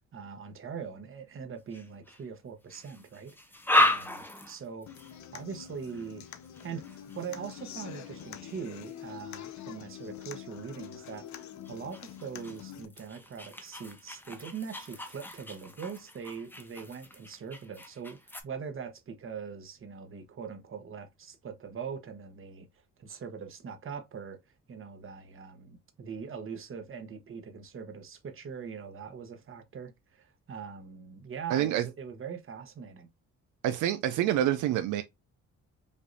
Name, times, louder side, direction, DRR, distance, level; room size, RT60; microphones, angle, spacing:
voice 1, 0.1-3.4 3.8-4.9 5.3-6.2 6.6-22.7 23.0-24.4 24.7-33.1, right 6 dB, 45° right, 1.0 m, -42 dB
sound 1, 1.7-2.2 2.7-9.2 10.0-10.2 10.8-18.4, left 1 dB, 5° left, 0.8 m, -35 dB
Human voice / Acoustic guitar, 4.9-12.8, left 10 dB, 65° left, 0.7 m, -45 dB
voice 2, 31.5-31.8 33.6-35.0, right 12 dB, 80° right, 0.5 m, -27 dB
5.1 x 2.6 x 2.6 m
cardioid pair, 90°, 30 cm